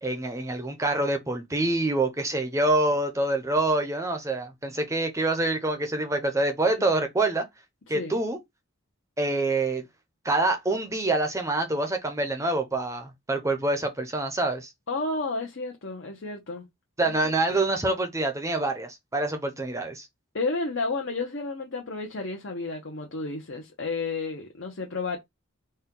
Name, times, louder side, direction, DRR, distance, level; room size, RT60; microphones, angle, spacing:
voice 1, 0.0-7.5 7.9-8.4 9.2-9.8 10.2-14.7 17.0-20.1, right 2 dB, 15° right, 0.6 m, -26 dB
voice 2, 7.9-8.2 14.9-16.7 17.0-17.6 20.3-25.2, left 3 dB, 60° left, 0.8 m, -32 dB
4.3 x 2.2 x 3.7 m
head